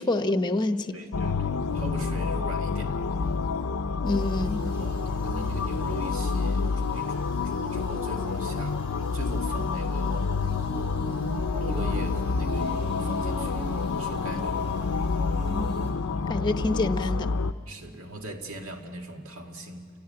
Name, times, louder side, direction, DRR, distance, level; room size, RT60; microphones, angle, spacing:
voice 1, 0.0-0.9 4.0-4.7 15.5-16.0 16.3-17.3, left 2 dB, 20° left, 8 dB, 0.8 m, -27 dB
voice 2, 0.9-2.9 4.7-8.8 9.1-10.3 11.6-14.8 17.7-19.9, right 1 dB, 70° right, 3 dB, 2.1 m, -40 dB
sound 1, 1.1-17.5, left 4 dB, 85° left, 0.6 m, -28 dB
sound 2, 4.1-15.9, equal, 50° right, 4.7 m, -43 dB
30.0 x 17.0 x 8.7 m, 2.3 s
head